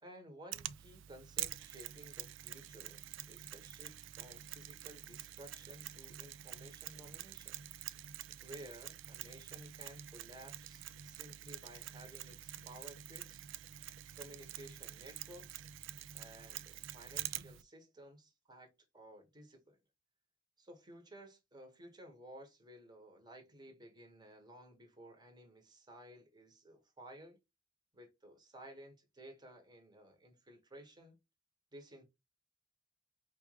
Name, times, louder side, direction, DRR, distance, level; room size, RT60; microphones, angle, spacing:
voice 1, 0.0-3.0 3.3-7.6 8.4-13.5 14.1-15.7 16.1-19.8 20.6-27.4 27.9-31.1 31.7-32.0, right 1 dB, 20° right, 1.2 m, -55 dB
Mechanisms, 0.5-17.6, right 13 dB, 80° right, 0.3 m, -47 dB
4.8 x 2.4 x 3.2 m
head